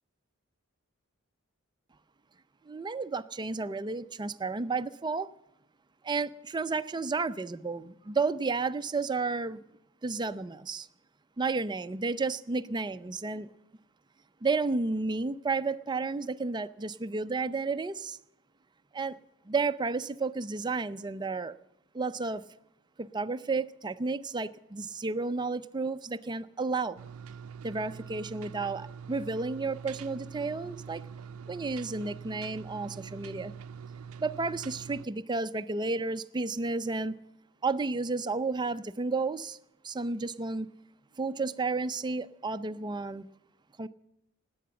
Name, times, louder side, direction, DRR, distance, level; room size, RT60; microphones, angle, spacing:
voice 1, 2.6-5.3 6.0-9.6 10.0-10.9 11.4-13.5 14.4-18.2 18.9-19.2 19.5-21.5 21.9-22.4 23.0-27.0 27.6-31.0 31.5-33.5 34.2-37.1 37.6-39.6 39.8-40.7 41.2-43.3 43.8-43.9, right 3 dB, 20° right, 0.5 m, -32 dB
sound 1, 27.0-35.1, right 6 dB, 85° right, 0.5 m, -44 dB
18.5 x 8.6 x 6.9 m
head